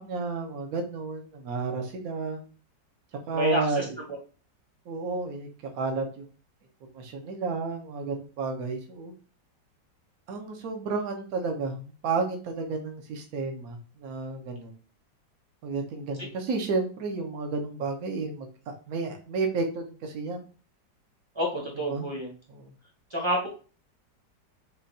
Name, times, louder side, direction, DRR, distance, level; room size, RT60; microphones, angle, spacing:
voice 1, 0.0-2.4 3.3-3.9 4.9-5.5 5.7-6.3 6.9-9.1 10.3-14.8 15.6-20.4 21.9-22.1 22.5-22.7, right 4 dB, 60° right, 3 dB, 1.2 m, -31 dB
voice 2, 3.3-3.8 21.3-22.3 23.1-23.5, equal, 20° right, -2 dB, 0.9 m, -28 dB
6.4 x 2.5 x 2.7 m, 0.36 s
omnidirectional pair, 1.9 m